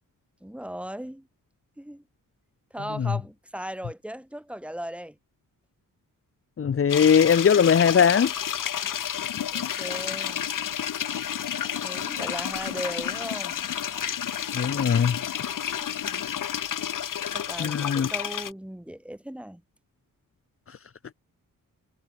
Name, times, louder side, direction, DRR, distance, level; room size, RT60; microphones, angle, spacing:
voice 1, 0.4-1.3 1.8-2.0 2.7-5.2 9.5-10.4 11.8-13.6 15.8-16.3 17.3-19.6, equal, 5° right, 4.1 m, -37 dB
voice 2, 6.6-8.3 14.5-15.2 17.6-18.1 20.7-20.8, left 7 dB, 40° left, 1.1 m, -20 dB
sound 1, 6.9-18.5, left 9 dB, 70° left, 2.2 m, -30 dB
wide cardioid pair, 135°, 33 cm